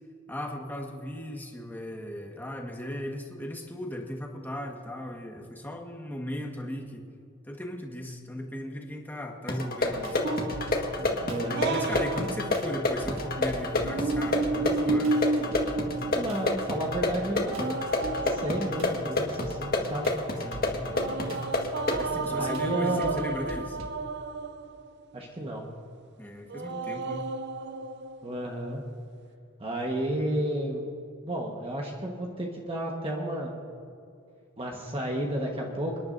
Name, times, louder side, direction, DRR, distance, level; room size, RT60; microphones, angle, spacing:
voice 1, 0.3-7.0 7.4-10.3 11.5-15.2 20.3-20.9 22.0-23.8 26.2-27.3, left 1 dB, 10° left, 1 dB, 1.5 m, -37 dB
sound 1, 9.5-22.1, left 2 dB, 45° left, 1.6 m, -29 dB
sound 2, 9.9-23.9, right 1 dB, 90° right, 1.6 m, -44 dB
sound 3, 10.2-12.9 13.7-16.7 17.4-19.5 20.9-25.0 26.5-28.5, right 3 dB, 55° right, 0.6 m, -32 dB
voice 2, 11.3-11.8 16.1-20.1 22.3-23.3 25.1-25.7 28.2-28.8 29.6-30.8 31.2-33.5 34.6-36.0, right 1 dB, 30° right, -1 dB, 1.3 m, -32 dB
27.5 x 10.5 x 2.7 m, 2.5 s
head